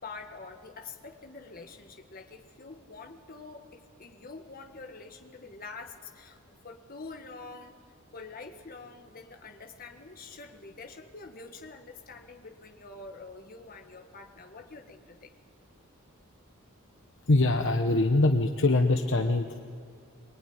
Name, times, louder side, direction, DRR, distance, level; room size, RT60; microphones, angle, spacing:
voice 1, 0.0-15.3, left 3 dB, 40° left, 3 dB, 1.8 m, -46 dB
voice 2, 17.3-19.6, left 2 dB, 55° left, 5 dB, 1.0 m, -23 dB
23.5 x 22.5 x 9.7 m, 2.3 s
head